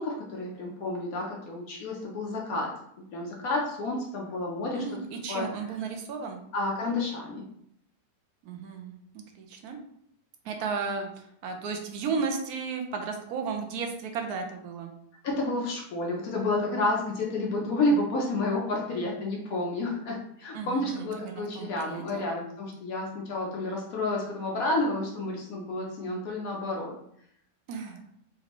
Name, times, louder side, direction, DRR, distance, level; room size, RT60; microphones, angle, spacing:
voice 1, 0.0-2.7 3.1-5.0 5.3-5.7 6.5-7.4 15.2-26.9, left 2 dB, 65° left, -1 dB, 1.1 m, -30 dB
voice 2, 4.7-6.4 8.4-9.8 10.4-11.1 11.4-14.9 20.5-22.3 27.7-28.0, right 5 dB, 70° right, 4 dB, 1.1 m, -34 dB
4.3 x 2.6 x 3.0 m, 0.69 s
omnidirectional pair, 1.7 m